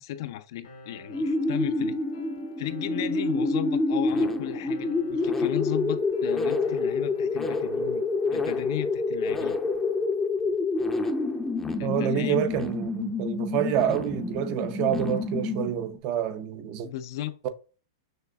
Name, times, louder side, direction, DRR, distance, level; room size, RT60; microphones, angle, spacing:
voice 1, 0.0-2.0 2.6-8.0 8.3-9.6 11.8-12.4 16.8-17.4, left 13 dB, 60° left, 0.4 m, -35 dB
sound 1, 0.6-8.6, right 1 dB, 90° left, 1.2 m, -48 dB
sound 2, 1.1-16.0, left 3 dB, 10° left, 0.5 m, -28 dB
voice 2, 11.8-16.9 17.4-17.5, right 10 dB, 40° right, 0.6 m, -28 dB
6.2 x 2.5 x 2.3 m
hypercardioid pair, 130°, 2 cm